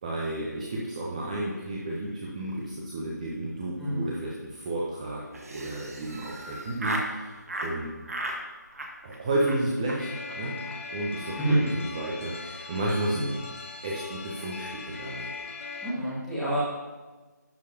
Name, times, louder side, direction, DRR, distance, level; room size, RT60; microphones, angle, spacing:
voice 1, 0.0-7.9 9.0-10.6 10.9-13.3 13.8-15.3, right 1 dB, 20° right, -4 dB, 0.9 m, -32 dB
Laughter, 5.3-7.1 7.5-7.7 8.1-8.4 8.7-9.2 9.5-9.6 9.9-10.0 10.3-10.4 10.6-10.8 11.0-11.4, right 1 dB, 50° right, 1.4 m, -35 dB
sound 1, 10.0-15.9, left 4 dB, 40° left, 1.2 m, -40 dB
voice 2, 15.8-16.6, right 1 dB, ahead, -12 dB, 1.9 m, -28 dB
11.5 x 6.6 x 2.9 m, 1.3 s
figure-of-eight pair, 155°, 10 cm